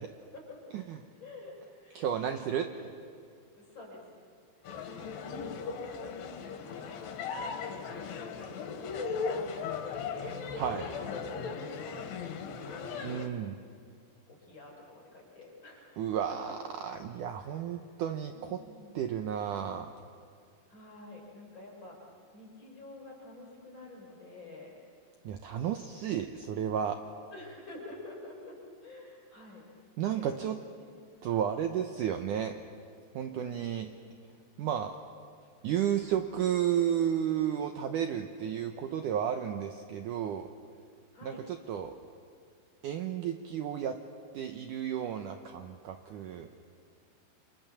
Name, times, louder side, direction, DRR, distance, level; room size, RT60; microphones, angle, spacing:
voice 1, 0.2-0.8 1.1-2.7 3.6-4.0 4.6-4.7 5.2-12.9 14.3-16.0 16.3-16.5 17.3-17.7 18.3-19.0 20.7-24.8 27.3-29.7 30.1-31.0 31.3-31.6 33.3-33.6 41.1-41.4, left 2 dB, 25° left, -2 dB, 7.3 m, -50 dB
voice 2, 2.0-2.7 10.6-10.9 13.0-13.6 16.0-16.6 16.8-18.6 19.0-19.9 25.2-27.0 30.0-30.6 31.2-32.6 33.1-33.9 34.6-35.0 35.6-40.5 41.2-41.9 42.8-44.0 44.3-46.5, right 9 dB, 80° right, 6 dB, 1.9 m, -32 dB
sound 1, 4.6-13.3, left 5 dB, 75° left, 3.9 m, -37 dB
28.5 x 27.0 x 7.1 m, 2.3 s
omnidirectional pair, 4.9 m